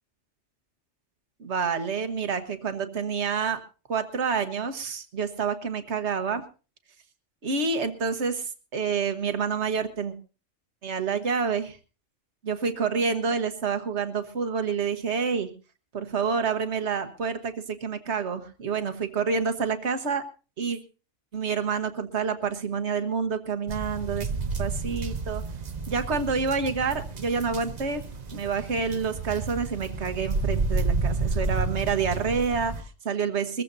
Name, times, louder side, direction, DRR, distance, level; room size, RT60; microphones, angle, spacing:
voice 1, 1.4-3.6 3.9-6.4 7.4-10.1 10.8-11.8 12.4-15.5 15.9-20.2 20.6-20.8 21.3-24.3 24.6-25.4 25.9-28.0 28.3-33.6, right 5 dB, 60° right, 8 dB, 1.6 m, -28 dB
sound 1, 23.7-32.8, right 3 dB, 35° right, 0.9 m, -30 dB
22.5 x 15.0 x 2.7 m, 0.34 s
omnidirectional pair, 1.4 m